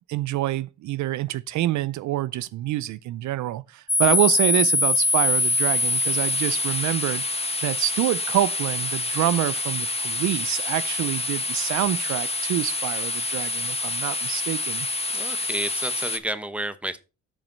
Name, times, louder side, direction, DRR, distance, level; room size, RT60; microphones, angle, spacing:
voice 1, 0.1-7.2 7.6-14.9, right 14 dB, 70° right, 0.5 m, -26 dB
sound 1, 3.9-16.2, left 3 dB, 20° left, 1.3 m, -25 dB
voice 2, 15.1-17.0, right 1 dB, 5° right, 0.9 m, -31 dB
7.5 x 5.0 x 5.4 m
cardioid pair, 90°, 30 cm